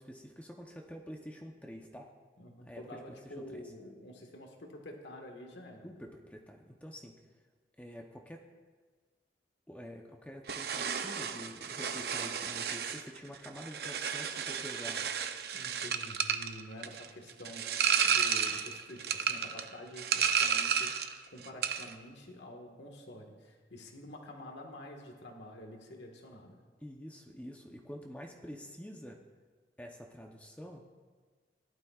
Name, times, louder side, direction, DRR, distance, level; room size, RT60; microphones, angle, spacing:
voice 1, 0.0-2.1 2.6-3.6 5.8-7.2 7.8-8.4 9.7-15.1 26.8-29.2 29.8-30.8, equal, 10° left, 1 dB, 0.7 m, -47 dB
voice 2, 2.4-5.9 15.5-17.7 18.0-26.6, left 1 dB, 75° left, 2 dB, 1.6 m, -48 dB
sound 1, 10.5-21.2 21.4-21.9, right 7 dB, 60° right, 0.6 m, -32 dB
17.5 x 12.0 x 2.4 m, 1.5 s
head